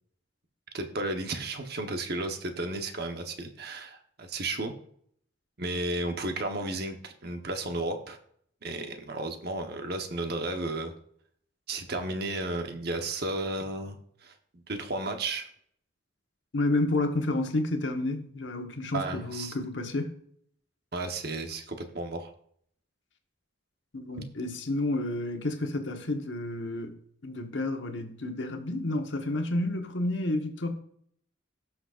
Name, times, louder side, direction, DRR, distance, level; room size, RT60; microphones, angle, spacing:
voice 1, 0.7-4.7 5.6-8.2 8.6-10.9 11.7-14.0 14.2-15.5 18.9-19.5 20.9-22.3, right 2 dB, 55° right, 1.1 m, -33 dB
voice 2, 16.5-20.1 23.9-26.9 27.2-30.7, left 2 dB, 70° left, 1.3 m, -30 dB
18.0 x 6.2 x 2.5 m
head